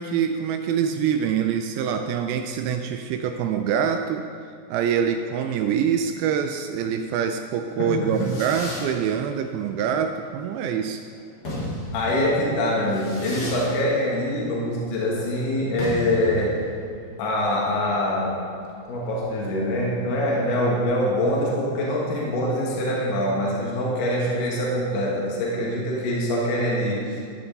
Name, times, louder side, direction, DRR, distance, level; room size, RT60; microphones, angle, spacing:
voice 1, 0.0-4.3 4.7-11.0, right 7 dB, 80° right, 6 dB, 2.3 m, -25 dB
voice 2, 7.8-8.3 11.9-16.6 17.2-18.4 18.9-27.2, left 1 dB, 75° left, -4 dB, 3.8 m, -24 dB
Fireworks, 7.8-20.0, left 1 dB, 40° left, 1.5 m, -37 dB
13.5 x 9.8 x 4.1 m, 2.3 s
omnidirectional pair, 4.7 m